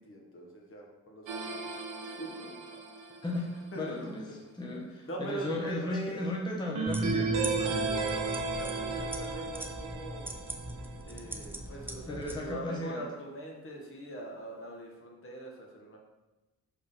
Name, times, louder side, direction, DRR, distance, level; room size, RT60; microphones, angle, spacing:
voice 1, 0.0-1.7 2.0-2.7 3.7-4.1 5.0-6.2 7.3-10.4 11.0-16.0, right 1 dB, 45° left, -1 dB, 1.4 m, -42 dB
sound 1, 1.3-3.6 6.7-11.2, right 4 dB, 90° right, 0.8 m, -35 dB
voice 2, 3.2-7.8 12.1-13.0, left 2 dB, 15° left, -2 dB, 0.9 m, -36 dB
sound 2, 6.9-12.4, right 1 dB, 5° right, 0.5 m, -39 dB
4.7 x 3.7 x 5.6 m, 1.1 s
cardioid pair, 95°, 31 cm